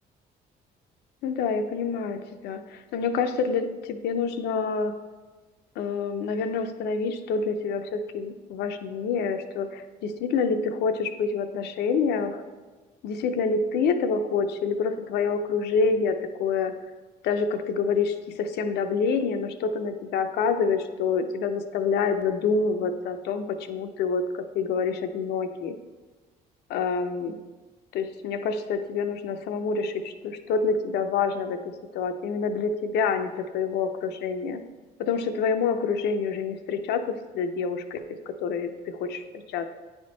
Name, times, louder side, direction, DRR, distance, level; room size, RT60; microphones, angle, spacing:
voice 1, 1.2-4.9 5.8-12.4 13.0-16.7 17.2-25.7 26.7-27.4 27.9-31.6 31.9-34.6 35.0-39.2 39.5-39.7, left 5 dB, 75° left, 8 dB, 0.5 m, -27 dB
9.2 x 3.6 x 3.8 m, 1.3 s
cardioid pair, 110°, 17 cm